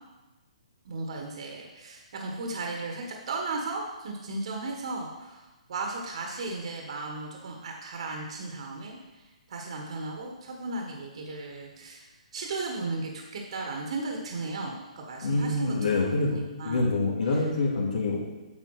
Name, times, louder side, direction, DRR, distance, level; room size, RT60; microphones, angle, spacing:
voice 1, 0.8-15.7 16.3-16.9 17.3-17.4, right 3 dB, 50° right, 1 dB, 1.5 m, -35 dB
voice 2, 15.2-18.2, left 3 dB, 75° left, -3 dB, 2.4 m, -26 dB
8.8 x 6.9 x 4.9 m, 1.1 s
hypercardioid pair, 165°, 4 cm